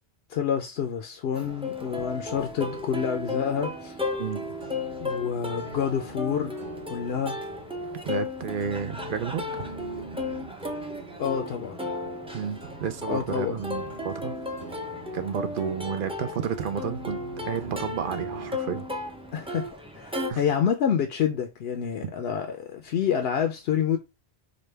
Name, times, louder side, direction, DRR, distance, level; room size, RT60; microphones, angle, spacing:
voice 1, 0.3-3.9 5.0-6.6 6.9-7.4 11.2-11.9 13.1-13.6 19.3-19.7 20.0-24.0, left 8 dB, 75° left, 0.8 m, -28 dB
Plucked string instrument, 1.3-20.3, left 2 dB, 5° right, 0.5 m, -35 dB
sound 1, 2.6-18.6, right 3 dB, 45° right, 1.3 m, -45 dB
voice 2, 8.0-9.7 12.3-14.4 15.1-18.9 20.3-20.4 22.0-22.1, right 7 dB, 60° right, 0.7 m, -31 dB
5.0 x 2.2 x 3.3 m
omnidirectional pair, 1.1 m